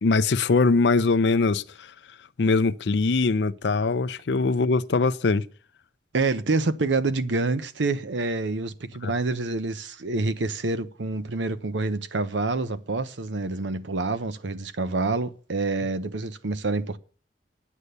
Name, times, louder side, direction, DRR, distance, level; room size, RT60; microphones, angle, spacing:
voice 1, 0.0-1.9 2.4-5.4 9.0-9.1, left 3 dB, 70° left, 0.5 m, -22 dB
voice 2, 6.1-17.0, right 3 dB, 85° right, 0.8 m, -27 dB
9.7 x 8.3 x 6.7 m
head